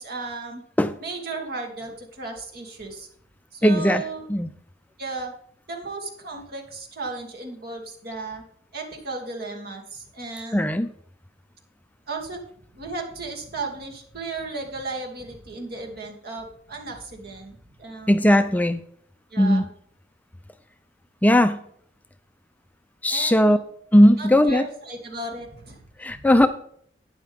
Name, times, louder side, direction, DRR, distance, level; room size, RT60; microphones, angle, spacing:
voice 1, 0.0-0.6 1.0-3.1 3.5-4.3 5.0-5.3 5.7-8.4 8.7-10.7 12.1-12.4 12.7-18.3 19.3-19.6 23.1-23.6 24.2-26.3, right 3 dB, 60° right, 1 dB, 2.5 m, -35 dB
voice 2, 3.6-4.0 4.3-4.5 10.5-10.9 18.1-18.8 19.4-19.7 21.2-21.6 23.0-23.6 23.9-24.7 26.0-26.5, left 1 dB, 10° left, 10 dB, 0.4 m, -18 dB
12.0 x 9.2 x 3.5 m, 0.63 s
head